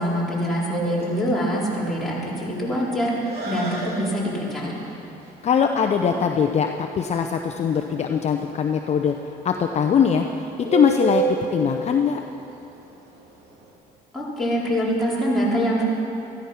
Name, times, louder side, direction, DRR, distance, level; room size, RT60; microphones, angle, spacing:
voice 1, 0.0-4.8 14.1-15.8, equal, ahead, -7 dB, 4.0 m, -24 dB
Bird, 0.7-13.7, right 5 dB, 65° right, 3.0 m, -32 dB
voice 2, 5.4-9.1 9.4-12.2, left 7 dB, 40° left, 4 dB, 0.7 m, -21 dB
14.0 x 13.0 x 5.8 m, 2.8 s
cardioid pair, 110°, 17 cm